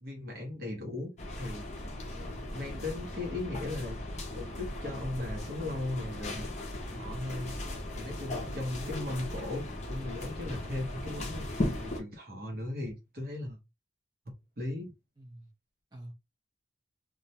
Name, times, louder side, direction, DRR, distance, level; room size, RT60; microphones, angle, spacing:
voice 1, 0.0-4.0 4.3-6.5 6.9-7.5 8.0-11.5 11.8-13.6 14.6-14.9, left 2 dB, 55° right, 0.8 m, -38 dB
sound 1, 1.2-12.0, left 1 dB, 40° left, 0.5 m, -37 dB
voice 2, 8.4-9.0 15.2-15.5 15.9-16.1, right 1 dB, 25° right, 0.6 m, -48 dB
2.2 x 2.1 x 2.7 m
head